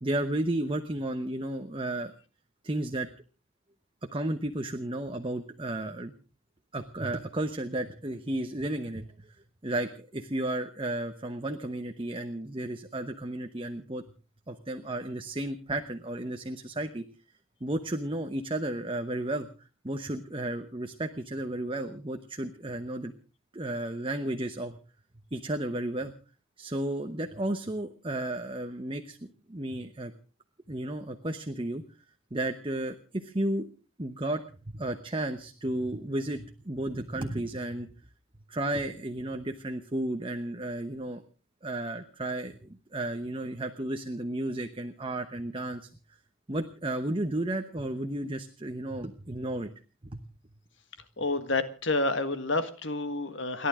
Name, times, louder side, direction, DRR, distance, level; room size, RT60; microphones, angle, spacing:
voice 1, 0.0-2.1 2.6-3.1 4.1-6.1 6.7-9.1 9.6-14.0 14.5-17.0 17.6-19.5 19.8-23.1 23.5-24.7 25.3-26.1 26.6-30.1 30.7-31.8 32.3-33.7 34.0-37.9 38.5-41.2 41.6-45.9 46.5-49.7 50.0-50.2, right 1 dB, 25° right, 6 dB, 1.0 m, -33 dB
voice 2, 51.2-53.7, left 2 dB, 60° left, 10 dB, 1.7 m, -29 dB
29.5 x 11.5 x 3.7 m, 0.36 s
head